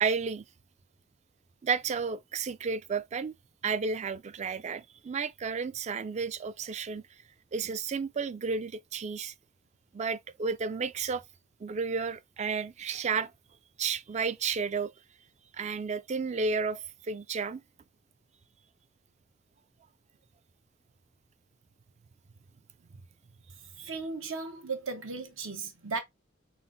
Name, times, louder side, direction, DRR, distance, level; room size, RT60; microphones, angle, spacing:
voice 1, 0.0-0.4 1.6-3.3 3.6-7.0 7.5-9.3 9.9-11.2 11.6-13.3 13.8-14.9 15.5-17.6 23.8-23.9, right 5 dB, 35° right, 0.3 m, -32 dB
voice 2, 23.8-26.0, right 4 dB, 80° right, 1.0 m, -36 dB
4.0 x 3.6 x 2.7 m
head